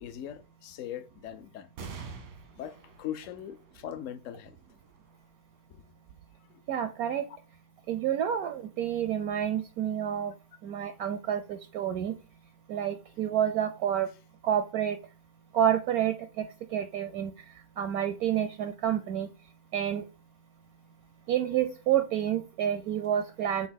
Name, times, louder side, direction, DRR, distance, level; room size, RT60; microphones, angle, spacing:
voice 1, 0.0-1.7 2.6-4.6 5.7-5.8 7.3-7.4, left 10 dB, 80° left, 0.7 m, -40 dB
sound 1, 1.8-8.7 9.3-9.4 10.5-11.0, right 5 dB, 90° right, 1.9 m, -50 dB
voice 2, 6.7-7.2 7.9-10.3 10.6-12.1 12.7-14.1 14.4-15.0 15.5-16.5 16.7-17.3 17.8-19.3 19.7-20.0 21.3-23.7, right 10 dB, 70° right, 0.9 m, -29 dB
7.2 x 2.7 x 5.7 m
omnidirectional pair, 2.0 m